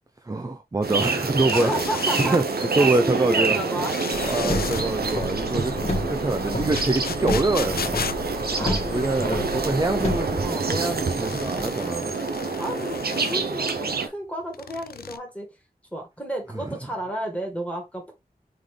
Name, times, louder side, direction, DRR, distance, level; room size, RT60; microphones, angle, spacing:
voice 1, 0.2-1.7 2.2-3.6 4.2-5.7 6.1-8.0 8.9-10.4 10.7-12.1 16.6-16.8, right 2 dB, 20° right, 0.5 m, -25 dB
sound 1, 0.8-14.1, right 4 dB, 75° right, 0.8 m, -27 dB
sound 2, 1.5-2.3 3.8-4.8 6.7-9.3 11.0-13.5 14.5-15.2, left 7 dB, 75° left, 0.4 m, -35 dB
voice 2, 1.5-2.4 2.8-3.9 4.2-4.3 8.6-10.1 10.4-10.7 12.6-15.5 15.9-18.1, right 1 dB, 10° left, 2.0 m, -32 dB
Car, 4.1-10.5, left 1 dB, 45° left, 1.6 m, -30 dB
3.8 x 3.6 x 3.2 m
wide cardioid pair, 60°, 16 cm